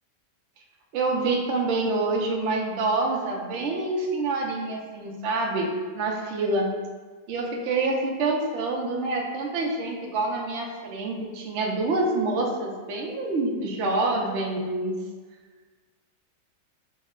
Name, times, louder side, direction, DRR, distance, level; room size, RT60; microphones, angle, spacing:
voice 1, 0.9-6.7 7.3-15.0, right 2 dB, 75° right, 0 dB, 0.6 m, -27 dB
5.2 x 2.1 x 3.6 m, 1.4 s
omnidirectional pair, 1.8 m